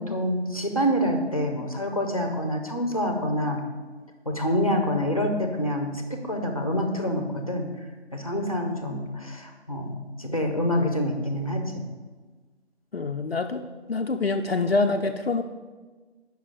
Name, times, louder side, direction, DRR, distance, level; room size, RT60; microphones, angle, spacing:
voice 1, 0.0-3.6 4.3-7.7 8.1-11.8, equal, 35° left, 4 dB, 0.7 m, -27 dB
voice 2, 12.9-13.6 13.9-15.4, left 3 dB, 60° left, 5 dB, 0.5 m, -25 dB
8.2 x 5.9 x 3.7 m, 1.3 s
figure-of-eight pair, 170°, 34 cm